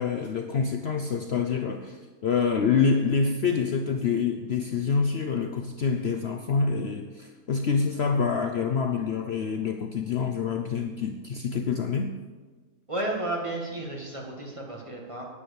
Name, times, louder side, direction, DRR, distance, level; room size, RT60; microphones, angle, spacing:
voice 1, 0.0-12.2, left 5 dB, 55° left, 6 dB, 0.8 m, -26 dB
voice 2, 12.9-15.2, right 2 dB, 20° right, -1 dB, 2.2 m, -32 dB
9.9 x 9.5 x 7.0 m, 1.4 s
omnidirectional pair, 1.5 m